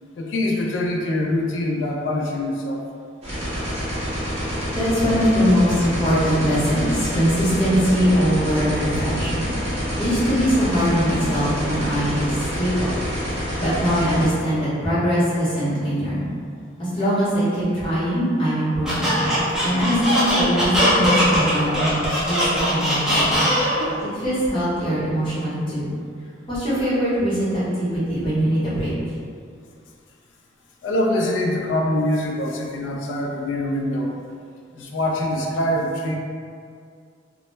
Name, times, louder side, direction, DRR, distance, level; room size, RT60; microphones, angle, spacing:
voice 1, 0.1-2.9 13.4-13.5 30.8-34.2 34.7-36.2, left 1 dB, 75° left, -1 dB, 0.3 m, -24 dB
sound 1, 3.2-14.3, equal, 35° right, 0.8 m, -27 dB
voice 2, 4.7-12.9 13.6-16.2 16.8-19.2 19.6-23.5 24.0-25.9 26.5-29.1, equal, 25° left, -12 dB, 0.8 m, -22 dB
Squeak, 18.8-23.9, equal, 5° right, 0.5 m, -20 dB
2.1 x 2.0 x 2.9 m, 2.2 s
head